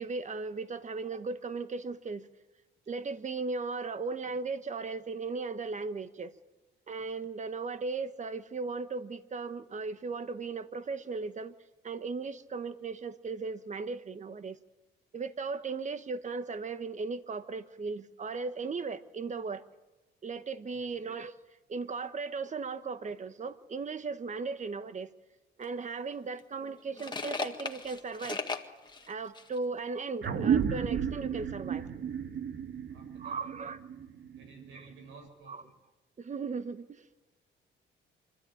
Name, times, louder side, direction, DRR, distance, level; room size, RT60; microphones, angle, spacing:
voice 1, 0.0-2.3 2.9-6.3 6.9-11.5 11.8-14.6 15.1-19.6 20.2-21.3 21.7-25.1 25.6-28.4 29.1-31.8 33.2-33.8 35.5-35.6 36.2-37.0, right 4 dB, 35° right, 11 dB, 1.3 m, -37 dB
sound 1, 25.6-25.7 26.4-29.6, left 4 dB, 20° left, 1.8 m, -38 dB
sound 2, 30.2-35.1, right 7 dB, 60° right, 1.6 m, -32 dB
voice 2, 32.9-33.4 34.3-35.7, right 4 dB, 90° right, 5 dB, 6.4 m, -53 dB
25.5 x 13.5 x 8.8 m, 1.1 s
cardioid pair, 90°, 20 cm